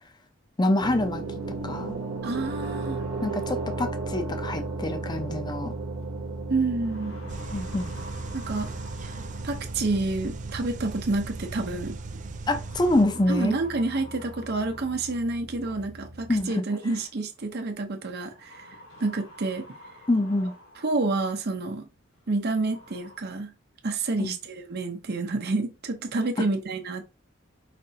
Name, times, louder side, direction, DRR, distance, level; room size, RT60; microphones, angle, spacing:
voice 1, 0.6-1.2 1.6-1.9 3.2-5.7 7.5-7.9 12.5-13.5 16.3-16.6 20.1-20.5 24.2-24.3, left 1 dB, 20° left, 0.5 m, -26 dB
sound 1, 0.8-16.5, right 3 dB, 75° right, 1.0 m, -36 dB
voice 2, 2.2-3.0 6.5-7.2 8.3-8.7 9.4-11.9 13.3-18.6 19.0-19.6 20.8-21.8 22.3-23.5 23.8-27.0, right 3 dB, 55° right, 0.8 m, -28 dB
sound 2, 6.0-6.1 6.6-10.0 11.4-11.8 12.6-15.4 16.7-16.8 18.3-21.1 21.6-21.7 22.3-22.4 22.6-23.2, equal, 70° left, 1.3 m, -47 dB
sound 3, 7.3-13.1, right 4 dB, 40° right, 0.4 m, -40 dB
5.1 x 3.2 x 2.8 m
head